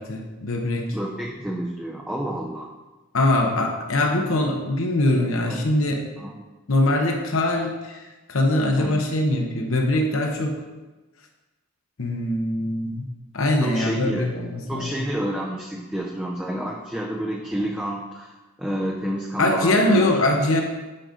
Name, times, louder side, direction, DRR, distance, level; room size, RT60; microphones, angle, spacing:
voice 1, 0.0-1.0 3.1-6.1 6.7-10.6 12.0-13.1 13.3-14.9 19.4-20.6, left 1 dB, 70° left, 2 dB, 0.8 m, -22 dB
voice 2, 0.9-2.7 5.5-5.6 6.2-6.5 8.8-9.0 13.6-14.3 14.7-20.1, right 1 dB, 5° right, -3 dB, 0.5 m, -29 dB
7.5 x 5.2 x 3.8 m, 1.2 s
head